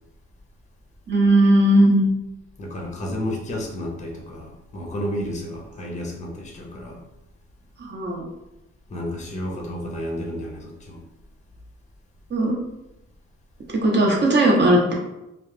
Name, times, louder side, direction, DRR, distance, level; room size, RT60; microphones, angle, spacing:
voice 1, 1.1-2.1 7.8-8.2 12.3-12.6 13.8-14.9, right 1 dB, 35° right, -1 dB, 0.7 m, -17 dB
voice 2, 2.6-7.0 8.9-11.0, equal, 25° left, 0 dB, 0.6 m, -31 dB
2.3 x 2.0 x 3.1 m, 0.93 s
cardioid pair, 90°, 30 cm